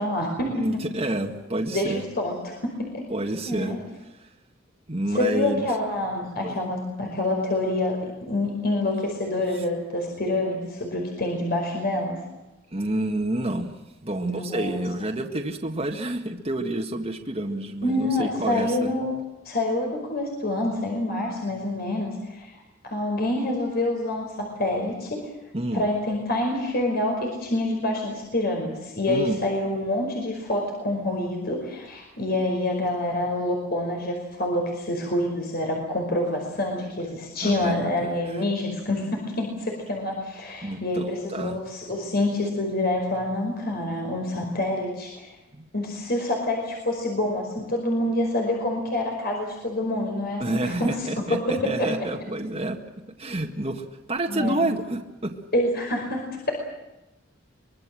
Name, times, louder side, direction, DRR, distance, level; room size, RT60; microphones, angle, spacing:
voice 1, 0.0-0.5 1.7-3.0 3.5-3.8 5.1-8.0 8.3-12.2 14.2-14.8 17.8-19.1 19.4-22.6 22.8-25.3 25.7-45.3 45.7-52.1 54.3-54.6 55.5-56.2, left 1 dB, 55° left, 1 dB, 5.2 m, -27 dB
voice 2, 0.5-2.0 3.1-3.8 4.9-5.7 6.4-6.6 12.7-18.9 25.5-25.8 29.1-29.4 37.4-38.2 40.6-41.6 45.5-45.7 50.4-52.8 53.2-55.3, right 1 dB, 30° right, 2 dB, 1.9 m, -29 dB
24.5 x 22.0 x 7.7 m, 1.0 s
head